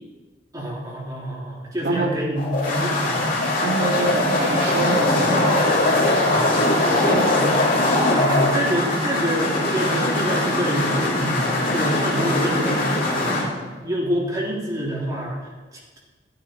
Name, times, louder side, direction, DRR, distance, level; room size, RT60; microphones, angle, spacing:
voice 1, 0.5-3.4 6.2-6.5 7.3-7.5 8.1-16.0, equal, 20° right, -5 dB, 3.3 m, -27 dB
sound 1, 2.4-13.5, left 2 dB, 50° left, 2.7 m, -21 dB
voice 2, 3.6-5.8 6.9-7.4, right 3 dB, 65° right, -1 dB, 2.6 m, -26 dB
14.0 x 9.3 x 4.6 m, 1.3 s
head